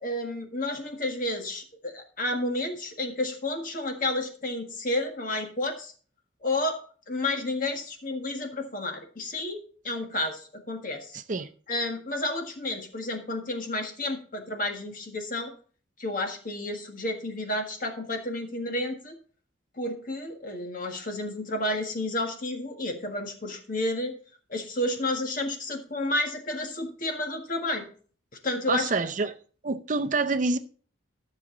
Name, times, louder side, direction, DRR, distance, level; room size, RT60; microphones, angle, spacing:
voice 1, 0.0-5.9 6.4-6.8 7.1-11.2 11.7-15.5 16.0-19.2 19.8-24.1 24.5-27.9 28.4-28.9, left 1 dB, 45° left, 4 dB, 1.6 m, -31 dB
voice 2, 11.1-11.5 28.7-29.3 29.6-30.6, right 3 dB, 40° right, 9 dB, 0.6 m, -27 dB
13.0 x 6.5 x 3.8 m, 0.42 s
head